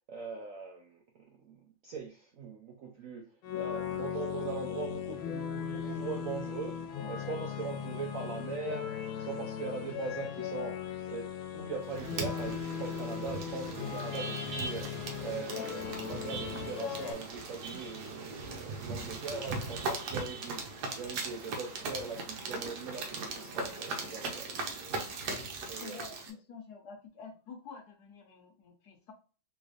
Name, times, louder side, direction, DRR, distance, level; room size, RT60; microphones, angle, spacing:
voice 1, 0.1-1.0 1.4-24.6 25.7-26.0, right 5 dB, 90° right, 0.7 m, -41 dB
sound 1, 3.4-17.1, left 9 dB, 80° left, 1.4 m, -38 dB
sound 2, 11.9-26.3, right 3 dB, 65° right, 1.2 m, -39 dB
voice 2, 25.8-29.1, left 5 dB, 60° left, 1.3 m, -48 dB
3.5 x 3.2 x 2.4 m
omnidirectional pair, 2.2 m